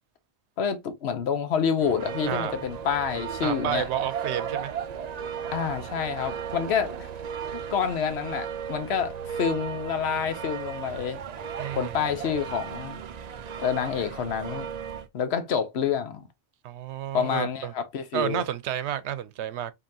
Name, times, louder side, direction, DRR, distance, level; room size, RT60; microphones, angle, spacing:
voice 1, 0.6-3.9 5.5-7.1 7.5-11.2 11.7-13.0 13.6-14.7 15.1-16.2 17.1-18.4, left 7 dB, 75° left, 1.0 m, -28 dB
sound 1, 1.8-15.1, right 7 dB, 55° right, 0.5 m, -35 dB
voice 2, 2.3-2.6 3.4-4.7 11.6-12.0 16.6-17.7 18.1-19.7, right 10 dB, 85° right, 0.9 m, -31 dB
5.4 x 2.8 x 2.7 m
omnidirectional pair, 1.1 m